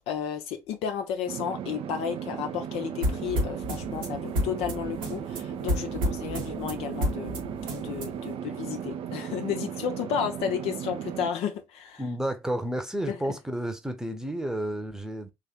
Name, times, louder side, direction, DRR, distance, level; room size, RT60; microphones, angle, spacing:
voice 1, 0.1-12.0 13.1-13.3, left 8 dB, 60° left, 0.6 m, -33 dB
sound 1, 1.3-11.3, right 9 dB, 55° right, 0.4 m, -36 dB
sound 2, 3.0-8.3, equal, 70° right, 1.2 m, -32 dB
voice 2, 12.0-15.3, right 1 dB, 5° right, 0.9 m, -31 dB
3.2 x 2.4 x 4.2 m
figure-of-eight pair, 45°, 12 cm